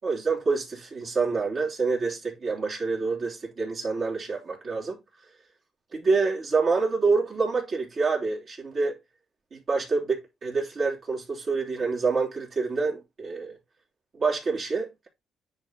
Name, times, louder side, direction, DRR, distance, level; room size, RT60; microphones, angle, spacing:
voice 1, 0.0-5.0 5.9-9.0 9.5-13.6 14.1-15.1, right 4 dB, 50° right, 3.4 m, -27 dB
10.0 x 4.1 x 3.0 m
cardioid pair, 90°, 0 cm